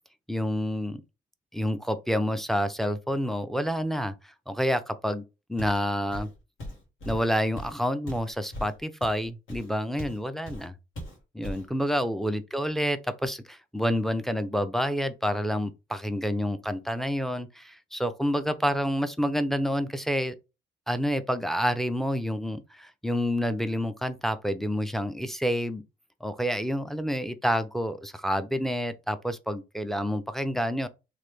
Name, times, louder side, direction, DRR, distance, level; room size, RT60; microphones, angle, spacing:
voice 1, 0.3-1.0 1.5-5.2 5.5-6.3 7.1-10.7 11.3-20.4 20.9-25.8 26.2-30.9, equal, ahead, 0.3 m, -28 dB
Walk footsteps, 5.6-5.9 6.1-10.2 10.5-10.7 11.0-11.7, equal, 85° left, 1.3 m, -39 dB
3.1 x 2.2 x 3.1 m
cardioid pair, 90°, 20 cm